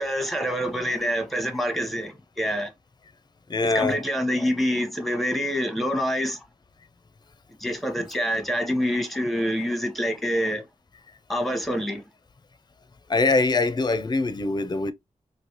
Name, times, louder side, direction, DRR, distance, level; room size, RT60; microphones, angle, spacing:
voice 1, 0.0-2.7 3.6-6.4 7.6-10.6 11.3-12.0, equal, ahead, 1.0 m, -26 dB
voice 2, 3.5-4.0 13.1-14.9, left 3 dB, 35° left, 0.5 m, -23 dB
3.1 x 2.6 x 2.8 m
cardioid pair, 55°, 13 cm